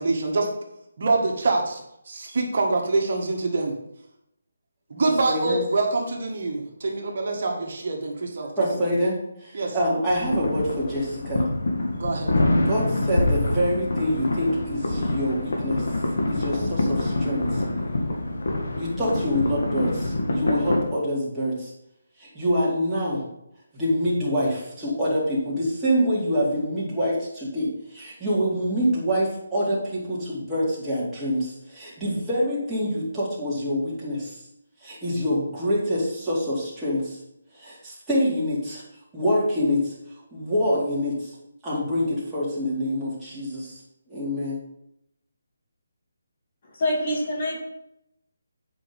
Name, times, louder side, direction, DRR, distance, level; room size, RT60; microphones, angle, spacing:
voice 1, 0.0-0.5 1.0-3.8 4.9-8.5 9.5-9.8 12.0-12.3, right 3 dB, 55° right, 1 dB, 1.7 m, -25 dB
voice 2, 5.0-5.6 8.6-11.5 12.6-15.9 16.3-17.6 18.7-21.7 22.2-23.2 23.7-34.4 34.8-37.2 37.5-38.8 39.1-39.9 40.3-41.3 41.6-43.8 44.1-44.6, equal, 5° right, -9 dB, 2.7 m, -26 dB
sound 1, 10.1-20.8, left 2 dB, 70° left, 1.9 m, -26 dB
voice 3, 46.6-47.6, left 1 dB, 40° left, -1 dB, 2.1 m, -26 dB
8.4 x 5.3 x 5.4 m, 0.79 s
hypercardioid pair, 165°, 0 cm